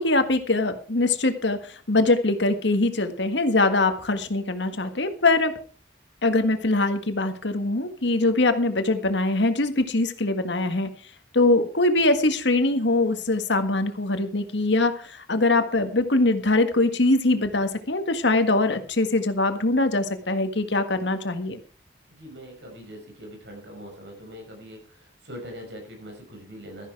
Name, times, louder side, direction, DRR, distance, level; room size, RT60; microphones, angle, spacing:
voice 1, 0.0-5.5 6.2-10.9 11.3-21.6, left 2 dB, 85° left, 8 dB, 1.7 m, -22 dB
voice 2, 22.1-26.9, equal, 75° right, 2 dB, 6.4 m, -42 dB
13.5 x 10.5 x 4.8 m, 0.39 s
head